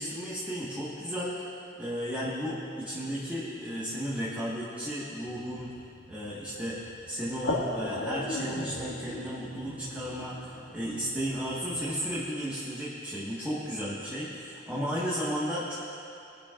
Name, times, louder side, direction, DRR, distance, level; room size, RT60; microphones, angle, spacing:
voice 1, 0.0-1.4 1.8-5.7 6.1-6.8 7.1-15.8, equal, 10° right, -9 dB, 1.7 m, -34 dB
sound 1, 5.3-12.3, left 1 dB, 75° left, 1.8 m, -38 dB
22.5 x 10.5 x 2.6 m, 2.7 s
head